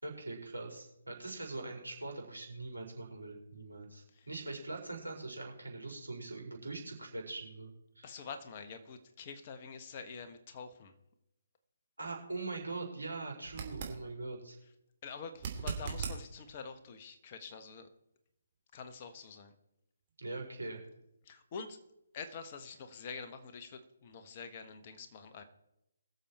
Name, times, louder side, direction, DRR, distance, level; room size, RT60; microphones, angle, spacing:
voice 1, 0.0-8.1 12.0-14.6 20.2-20.8, right 3 dB, 85° right, 0 dB, 4.8 m, -42 dB
voice 2, 8.0-10.9 14.6-14.7 15.0-17.9 18.7-19.5 21.2-21.8 22.1-25.4, left 5 dB, 35° left, 8 dB, 1.3 m, -46 dB
sound 1, 13.5-14.0 15.3-16.2 19.2-19.3, right 6 dB, 35° right, 2.7 m, -38 dB
22.0 x 7.3 x 4.4 m, 0.87 s
figure-of-eight pair, 145°, 0 cm